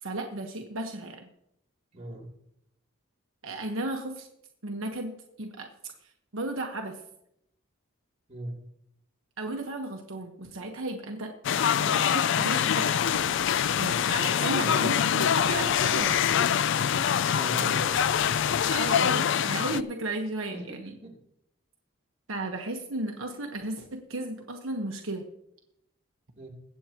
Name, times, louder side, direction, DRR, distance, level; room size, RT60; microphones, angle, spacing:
voice 1, 0.0-1.3 3.4-4.3 4.6-5.9 6.3-7.0 9.4-11.3 11.8-16.2 18.7-20.9 22.3-25.3, right 2 dB, 75° right, 3 dB, 1.2 m, -34 dB
voice 2, 1.9-2.3 8.3-8.5 17.3-18.0 20.5-21.1 26.4-26.5, right 1 dB, 30° right, -3 dB, 3.2 m, -39 dB
sound 1, 11.4-19.8, left 8 dB, 60° left, 0.4 m, -24 dB
22.5 x 8.3 x 3.0 m, 0.78 s
head